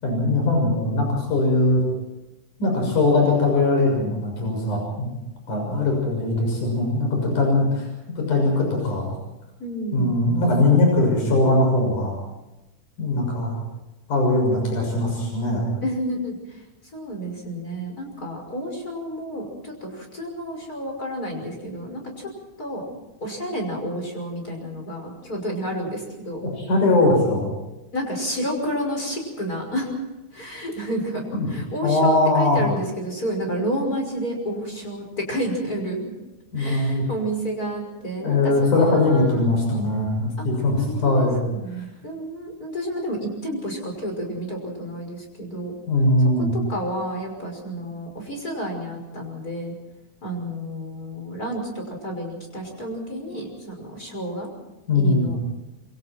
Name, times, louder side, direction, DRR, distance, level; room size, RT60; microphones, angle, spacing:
voice 1, 0.0-1.8 2.6-5.1 5.5-7.9 8.2-9.1 9.9-12.2 13.0-13.6 14.1-15.7 26.4-27.5 31.4-31.5 31.8-32.7 36.5-37.1 38.2-41.4 45.9-46.5 54.9-55.3, left 2 dB, 80° left, 1 dB, 7.9 m, -20 dB
voice 2, 9.6-10.2 15.8-16.4 16.9-22.3 22.6-22.8 23.2-26.4 27.9-29.9 30.3-31.2 31.5-36.1 36.6-39.4 40.8-45.7 46.4-49.7 50.2-51.6 51.9-54.5 54.9-55.4, equal, 25° left, 2 dB, 6.1 m, -30 dB
27.5 x 24.0 x 4.5 m, 1.0 s
omnidirectional pair, 3.5 m